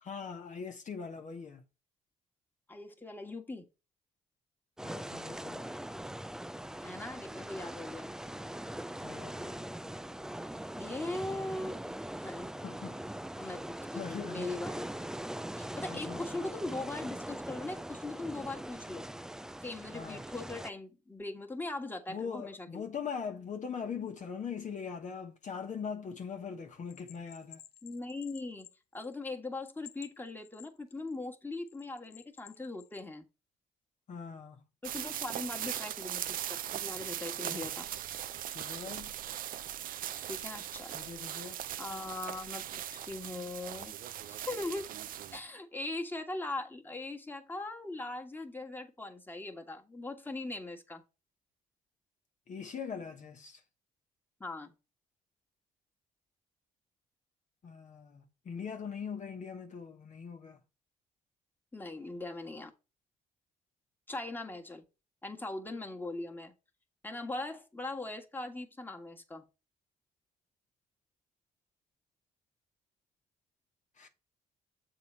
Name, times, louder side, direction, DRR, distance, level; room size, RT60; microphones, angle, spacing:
voice 1, 0.0-1.6 4.8-5.7 9.0-9.7 12.6-13.0 13.9-14.5 15.9-16.5 19.9-20.3 22.1-27.6 34.1-34.6 37.5-37.7 38.5-39.1 40.9-41.6 52.5-53.6 57.6-60.6 74.0-74.1, left 6 dB, 50° left, 1.1 m, -41 dB
voice 2, 2.7-3.6 6.8-8.1 10.8-11.7 12.2-12.5 13.4-14.9 15.6-19.1 19.6-22.9 27.8-28.7 28.9-33.2 34.8-37.9 40.3-40.9 41.4-41.5 41.8-44.0 44.3-44.9 45.3-51.0 54.4-54.7 61.7-62.7 64.1-64.8 65.2-66.5 67.0-69.4, left 2 dB, 10° left, 1.5 m, -40 dB
sound 1, 4.8-20.7, right 1 dB, 5° right, 0.3 m, -41 dB
Bell, 26.9-29.3 29.6-31.2 31.7-33.0, left 13 dB, 80° left, 0.7 m, -54 dB
sound 2, 34.8-45.4, right 11 dB, 60° right, 0.5 m, -39 dB
7.1 x 3.8 x 4.6 m
supercardioid pair, 65°, 16 cm